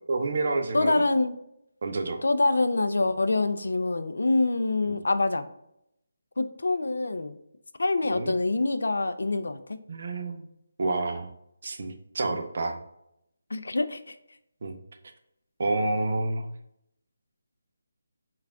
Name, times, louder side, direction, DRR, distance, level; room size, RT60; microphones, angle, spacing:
voice 1, 0.1-1.1 1.8-2.2 4.8-5.0 8.0-8.4 9.9-10.4 10.8-11.3 11.6-12.8 14.6-14.8 15.6-16.5, right 2 dB, 45° right, 5 dB, 0.6 m, -29 dB
voice 2, 0.7-1.3 2.2-5.5 6.4-7.4 7.8-9.8 13.5-14.1, left 2 dB, 85° left, 10 dB, 0.4 m, -25 dB
5.8 x 2.4 x 3.5 m, 0.78 s
hypercardioid pair, 170°, 0 cm